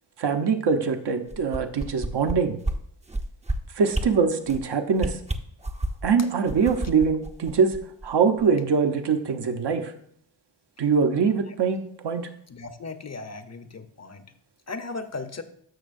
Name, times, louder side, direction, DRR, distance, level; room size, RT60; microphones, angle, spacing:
voice 1, 0.2-2.6 3.8-5.2 6.0-7.8 8.0-9.9 10.8-12.3, right 5 dB, 55° right, 7 dB, 1.0 m, -23 dB
sound 1, 1.3-2.3 2.6-2.8 3.1-3.5 3.9-4.1 4.4-4.6 5.0-6.1 6.5-8.1 8.4-8.5, right 2 dB, 15° right, 0.7 m, -29 dB
voice 2, 12.5-14.2 14.7-15.4, left 3 dB, 30° left, 9 dB, 0.9 m, -36 dB
12.5 x 6.1 x 2.6 m, 0.66 s
supercardioid pair, 45°, 49 cm